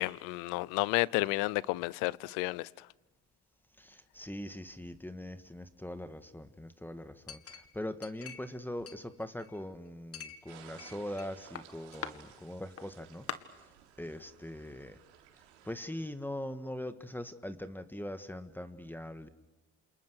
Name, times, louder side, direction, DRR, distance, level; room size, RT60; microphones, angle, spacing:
voice 1, 0.0-2.7, left 22 dB, 70° left, 0.8 m, -31 dB
voice 2, 3.8-13.3 13.5-13.6 14.0-15.0 15.6-19.3, left 1 dB, 5° left, 1.7 m, -41 dB
Chink clink, 7.3-8.6 8.9-9.6 10.1-11.3 11.6-12.1 12.8-12.9 13.3-13.4, left 8 dB, 45° left, 2.0 m, -43 dB
sound 1, 10.5-15.8, right 10 dB, 85° right, 3.6 m, -57 dB
28.5 x 28.0 x 6.4 m
hypercardioid pair, 75°, 33 cm